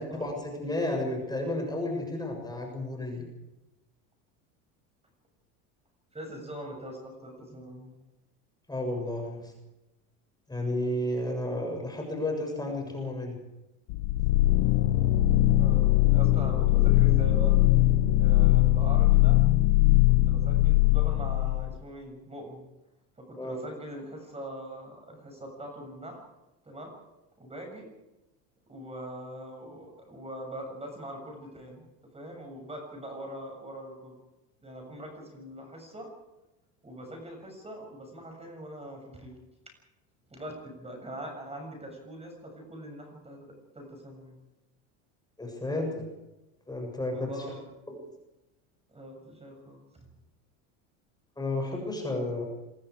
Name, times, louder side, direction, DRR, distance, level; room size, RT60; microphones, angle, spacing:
voice 1, 0.0-3.2 8.7-9.5 10.5-13.4 23.4-23.6 45.4-46.0 46.7-47.4 47.9-48.0 51.4-52.4, left 1 dB, 10° left, 1 dB, 7.3 m, -32 dB
voice 2, 6.1-8.0 15.4-17.6 18.2-19.4 20.1-22.6 23.2-26.2 26.6-26.9 27.4-27.9 28.7-31.8 32.1-34.2 34.6-36.1 36.8-39.3 40.3-44.4 47.1-47.6 48.9-49.8, right 1 dB, 15° right, 3 dB, 7.4 m, -42 dB
sound 1, 13.9-21.7, left 16 dB, 80° left, 1.4 m, -21 dB
26.5 x 21.5 x 5.0 m, 0.98 s
supercardioid pair, 110°, 39 cm